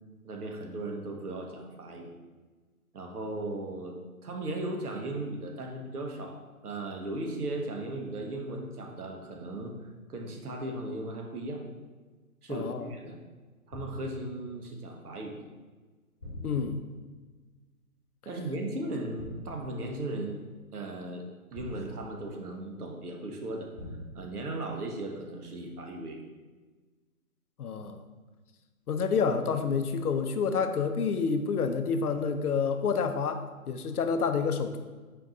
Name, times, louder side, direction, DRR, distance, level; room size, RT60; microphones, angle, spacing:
voice 1, 0.2-2.1 2.9-6.4 6.6-9.7 10.1-11.6 12.4-13.2 13.7-15.4 18.2-20.4 20.7-23.7 24.1-26.2, right 2 dB, 85° right, 2 dB, 1.0 m, -37 dB
voice 2, 12.5-12.8 16.4-16.8 27.6-28.0 28.9-34.8, left 5 dB, 85° left, 8 dB, 0.6 m, -28 dB
sound 1, 13.7-14.2 16.2-17.0 19.2-19.7 21.5-22.4 23.7-24.3, left 1 dB, 15° right, 0.6 m, -42 dB
4.5 x 2.6 x 3.7 m, 1.3 s
hypercardioid pair, 165°, 44 cm